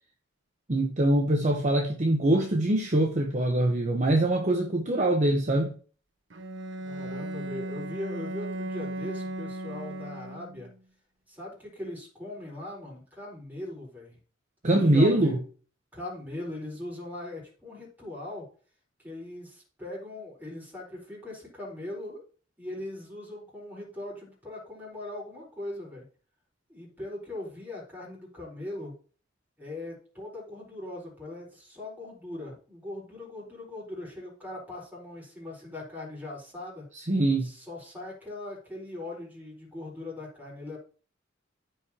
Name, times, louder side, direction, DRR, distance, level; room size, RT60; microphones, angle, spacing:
voice 1, 0.7-5.7 14.6-15.4 37.1-37.5, right 1 dB, 40° right, 0.9 m, -23 dB
Bowed string instrument, 6.3-10.7, right 1 dB, 75° right, 1.1 m, -36 dB
voice 2, 6.8-10.7 11.3-14.2 14.6-15.4 15.9-18.4 19.0-22.2 22.6-26.0 26.7-28.9 29.6-36.9 37.4-40.8, left 1 dB, 10° right, 4.5 m, -40 dB
14.5 x 5.0 x 2.9 m
head